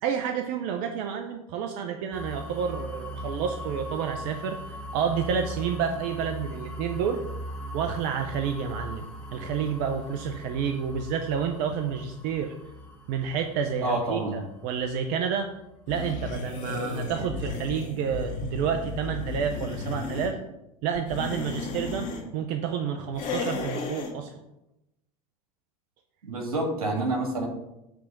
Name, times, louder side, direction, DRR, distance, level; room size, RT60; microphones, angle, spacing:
voice 1, 0.0-7.2 7.7-9.1 9.3-12.5 13.1-15.5 15.9-20.4 20.8-24.3, right 7 dB, 55° right, 6 dB, 0.7 m, -29 dB
sound 1, 2.1-15.9, equal, 5° left, 1.7 m, -40 dB
voice 2, 13.8-14.4 26.3-27.5, right 2 dB, 85° right, 0 dB, 2.2 m, -28 dB
sound 2, 15.9-20.3 20.9-22.2 23.1-24.1, left 3 dB, 45° left, 1.9 m, -33 dB
7.6 x 3.5 x 6.5 m, 0.90 s
hypercardioid pair, 90°, 18 cm